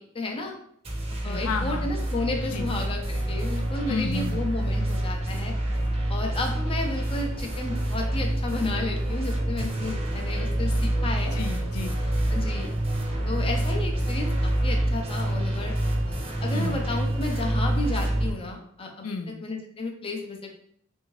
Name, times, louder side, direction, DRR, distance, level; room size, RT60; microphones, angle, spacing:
voice 1, 0.1-0.5 1.2-5.5 6.1-11.4 12.3-12.7 13.2-15.7 16.1-19.1 19.4-20.5, left 2 dB, 25° left, 2 dB, 0.5 m, -32 dB
sound 1, 0.8-18.3, right 1 dB, 30° right, 0.8 m, -27 dB
voice 2, 1.2-1.9 2.5-2.7 3.9-4.5 11.3-12.0 16.5-16.9 19.0-19.4, left 4 dB, 75° left, 5 dB, 0.4 m, -32 dB
3.6 x 2.7 x 3.1 m, 0.67 s
head